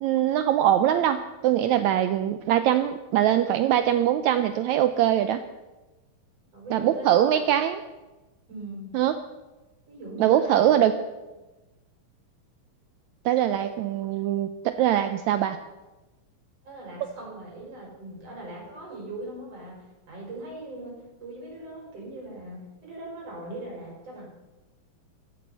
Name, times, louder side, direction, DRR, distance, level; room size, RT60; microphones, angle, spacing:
voice 1, 0.0-5.4 6.7-7.8 8.9-9.2 10.2-10.9 13.2-15.6, right 11 dB, 85° right, 10 dB, 1.6 m, -22 dB
voice 2, 6.5-7.5 8.5-8.9 9.9-10.7 16.6-24.2, right 1 dB, 45° right, -2 dB, 6.3 m, -40 dB
15.0 x 14.0 x 5.5 m, 1.1 s
omnidirectional pair, 4.0 m